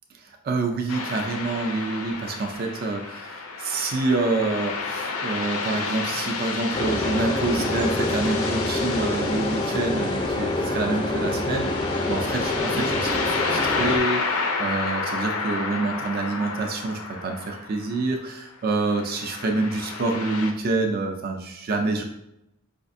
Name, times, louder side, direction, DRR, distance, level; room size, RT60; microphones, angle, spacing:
voice 1, 0.4-11.7 12.1-22.0, right 3 dB, 45° right, 3 dB, 0.4 m, -27 dB
sound 1, 0.9-18.2 18.8-20.5, left 4 dB, 85° left, 0.5 m, -31 dB
sound 2, 6.7-14.0, left 2 dB, 20° left, 0.4 m, -26 dB
4.9 x 2.4 x 2.5 m, 0.82 s
head